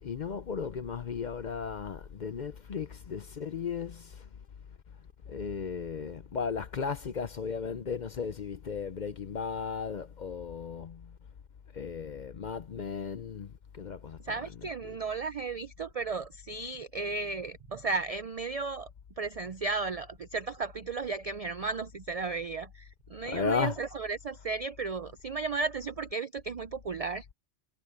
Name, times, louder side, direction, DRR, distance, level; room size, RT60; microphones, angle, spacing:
voice 1, 0.0-4.2 5.3-11.1 11.7-14.4 14.8-15.0 23.2-23.8, left 6 dB, 50° left, 0.6 m, -35 dB
voice 2, 14.2-18.9 19.2-27.3, right 4 dB, 70° right, 0.3 m, -34 dB
omnidirectional pair, 1.3 m